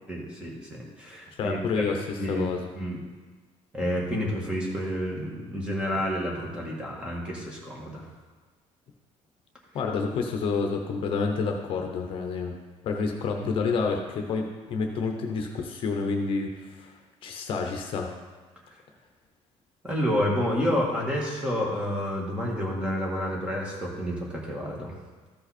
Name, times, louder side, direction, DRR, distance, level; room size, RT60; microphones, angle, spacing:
voice 1, 0.1-1.8 2.1-2.5 2.8-3.0 3.7-8.1 19.8-24.9, equal, 10° right, -3 dB, 1.7 m, -29 dB
voice 2, 1.4-2.6 9.7-12.5 12.8-16.9 17.2-18.1, left 4 dB, 50° left, 3 dB, 0.8 m, -29 dB
13.5 x 5.4 x 4.3 m, 1.4 s
cardioid pair, 180°, 12 cm